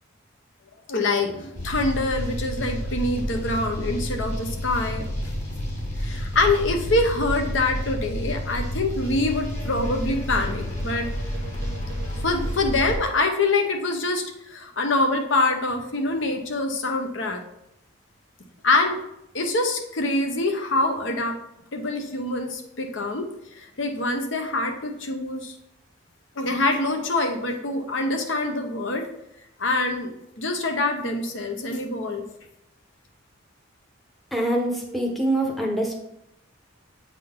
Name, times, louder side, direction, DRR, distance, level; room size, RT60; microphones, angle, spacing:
voice 1, 0.9-5.1 6.0-11.1 12.2-17.4 18.6-19.0 19.3-21.3 21.7-23.3 23.5-25.5 26.4-29.1 29.6-30.1 30.4-32.2, left 2 dB, 65° left, 4 dB, 0.8 m, -25 dB
sound 1, 1.6-13.0, equal, 35° left, 1.8 m, -30 dB
voice 2, 34.3-36.0, right 1 dB, ahead, 1 dB, 0.8 m, -24 dB
7.7 x 3.7 x 3.6 m, 0.81 s
head